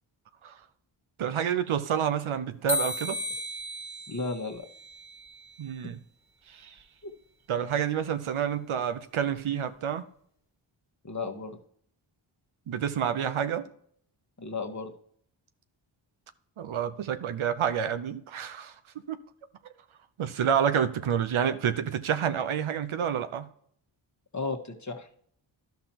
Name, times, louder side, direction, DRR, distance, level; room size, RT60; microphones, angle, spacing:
voice 1, 1.2-3.2 5.6-6.0 6.5-6.7 7.5-10.0 12.7-13.7 16.6-18.7 19.1-19.2 20.2-23.5, right 8 dB, 75° right, 0.8 m, -28 dB
sound 1, 2.7-5.8, left 2 dB, 5° right, 1.7 m, -35 dB
voice 2, 4.1-4.7 5.8-5.9 7.0-7.1 11.0-11.6 14.4-14.9 24.3-25.1, left 3 dB, 35° left, 1.4 m, -34 dB
11.5 x 5.8 x 2.9 m
cardioid pair, 45°, 49 cm